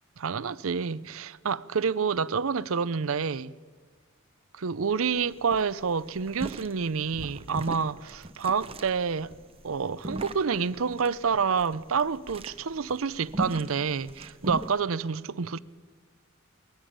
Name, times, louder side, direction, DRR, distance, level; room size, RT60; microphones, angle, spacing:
voice 1, 0.2-3.6 4.5-9.3 9.6-15.6, right 5 dB, 75° right, 0.6 m, -28 dB
sound 1, 4.7-4.8 5.1-5.2 5.5-14.8, right 1 dB, 30° right, 0.9 m, -38 dB
21.5 x 16.5 x 8.8 m
head